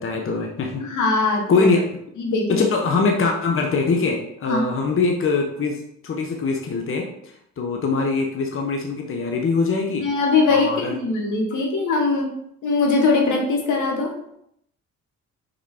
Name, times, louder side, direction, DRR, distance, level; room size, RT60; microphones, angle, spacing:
voice 1, 0.0-0.8 1.5-1.9 2.5-10.1 10.5-10.9, left 4 dB, 45° left, 2 dB, 1.1 m, -23 dB
voice 2, 0.8-1.7 2.2-2.7 4.5-4.7 9.9-12.3 12.6-14.1, left 3 dB, 80° left, 1 dB, 1.7 m, -21 dB
5.3 x 5.0 x 4.4 m, 0.74 s
cardioid pair, 90°, 30 cm